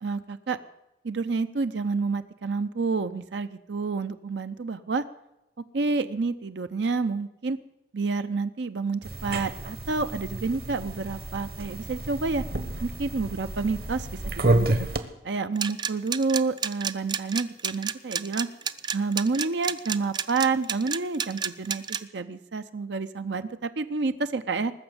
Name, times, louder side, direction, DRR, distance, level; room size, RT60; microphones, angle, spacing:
voice 1, 0.0-0.6 1.0-5.0 5.7-7.6 7.9-12.4 12.8-14.1 14.3-14.9 15.2-18.5 18.9-24.7, right 4 dB, 75° right, 10 dB, 0.6 m, -29 dB
sound 1, 9.0-15.0, right 2 dB, 55° right, 1.2 m, -29 dB
sound 2, 15.6-22.0, right 7 dB, 25° right, 0.5 m, -29 dB
19.5 x 7.1 x 9.5 m, 0.92 s
head